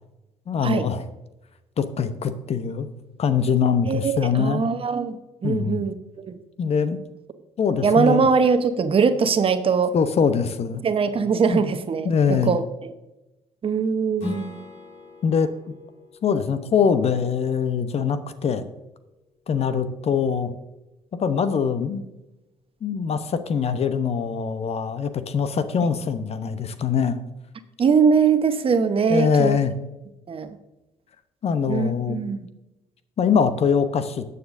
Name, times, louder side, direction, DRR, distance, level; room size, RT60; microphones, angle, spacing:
voice 1, 0.5-1.0 1.8-2.9 3.2-4.6 5.4-5.8 6.6-7.0 7.6-8.3 9.9-10.8 11.5-11.6 12.0-12.5 15.2-15.5 16.2-18.6 19.5-20.5 21.2-22.0 22.8-27.2 29.1-29.7 31.4-32.2 33.2-34.2, left 6 dB, 45° left, 12 dB, 0.9 m, -23 dB
voice 2, 3.8-6.4 7.8-9.9 10.8-12.9 13.6-14.6 27.8-29.6 30.3-30.6 31.7-32.5, right 5 dB, 40° right, 10 dB, 1.0 m, -22 dB
Strum, 14.2-19.4, left 3 dB, 65° left, 3.4 m, -40 dB
19.0 x 6.8 x 2.7 m, 0.99 s
hypercardioid pair, 55°, 14 cm